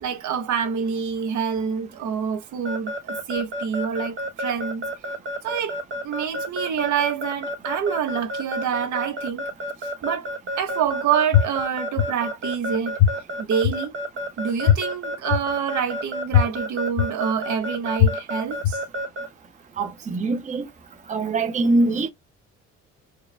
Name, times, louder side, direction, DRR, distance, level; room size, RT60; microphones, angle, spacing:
voice 1, 0.0-4.9 5.4-9.4 9.8-10.3 10.6-13.9 14.4-18.8, right 7 dB, 70° right, 1.2 m, -27 dB
Keyboard (musical) / Alarm, 2.6-19.3, equal, 40° right, 1.1 m, -30 dB
sound 1, 11.3-11.4 12.0-12.1 13.0-13.1 13.6-13.7 14.7-14.8 15.3-15.4 16.3-16.4 17.0-17.1 18.0-18.1 18.6-18.7, left 12 dB, 75° left, 0.9 m, -15 dB
voice 2, 19.8-20.7 21.1-22.1, right 2 dB, 25° right, 0.7 m, -23 dB
4.5 x 2.2 x 3.3 m
cardioid pair, 145°, 31 cm